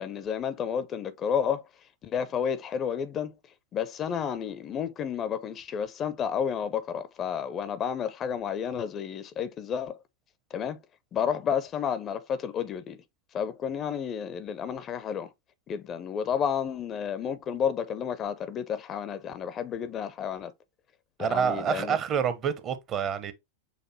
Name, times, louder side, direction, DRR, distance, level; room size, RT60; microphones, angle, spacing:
voice 1, 0.0-1.6 2.0-3.4 3.7-10.0 10.5-10.8 11.1-13.0 13.3-15.3 15.7-20.5 21.2-22.0, left 8 dB, 30° left, 0.5 m, -31 dB
voice 2, 21.2-23.3, right 7 dB, 30° right, 0.7 m, -27 dB
6.5 x 2.5 x 2.7 m
figure-of-eight pair, 90°, 0 cm